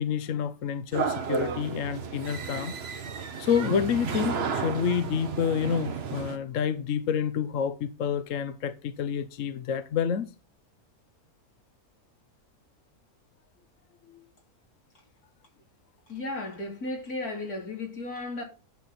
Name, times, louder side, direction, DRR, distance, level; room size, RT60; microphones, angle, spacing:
voice 1, 0.0-3.0 3.4-10.3 14.1-14.2, left 7 dB, 65° left, 1.1 m, -28 dB
sound 1, 0.9-6.4, right 5 dB, 45° right, 1.2 m, -32 dB
voice 2, 16.1-18.4, left 2 dB, 85° left, 3.8 m, -34 dB
10.5 x 7.2 x 4.2 m
omnidirectional pair, 1.5 m